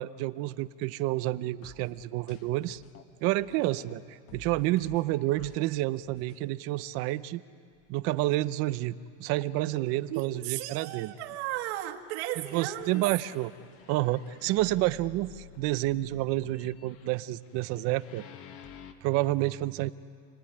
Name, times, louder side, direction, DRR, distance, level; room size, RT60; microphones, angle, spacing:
voice 1, 0.0-2.8 3.2-7.4 7.9-11.1 12.5-13.5 13.9-18.3 19.0-19.9, right 16 dB, 40° right, 16 dB, 0.6 m, -29 dB
sound 1, 1.6-4.0 4.3-5.6 6.0-6.4 7.0-7.1 7.7-7.8 8.3-8.4 12.8-18.9, left 5 dB, 35° left, 1.6 m, -52 dB
sound 2, 8.8-11.5 12.3-15.7 16.1-16.6, left 5 dB, 65° left, 4.0 m, -58 dB
voice 2, 10.1-13.0, right 13 dB, 60° right, 3 dB, 2.1 m, -35 dB
28.5 x 19.0 x 10.0 m, 2.2 s
supercardioid pair, 150°, 37 cm